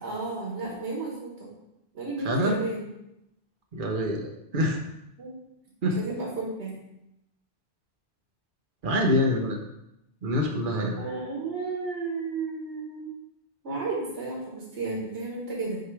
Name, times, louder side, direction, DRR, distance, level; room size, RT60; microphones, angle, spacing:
voice 1, 0.0-1.5 1.9-2.9 5.2-5.3 6.0-6.8 11.0-13.1 13.6-15.8, right 3 dB, 90° right, -4 dB, 1.7 m, -33 dB
voice 2, 2.2-2.6 3.7-4.8 5.8-6.0 8.8-9.6 10.2-11.0, left 1 dB, 55° right, 2 dB, 1.0 m, -25 dB
6.5 x 4.8 x 3.3 m, 0.85 s
omnidirectional pair, 1.1 m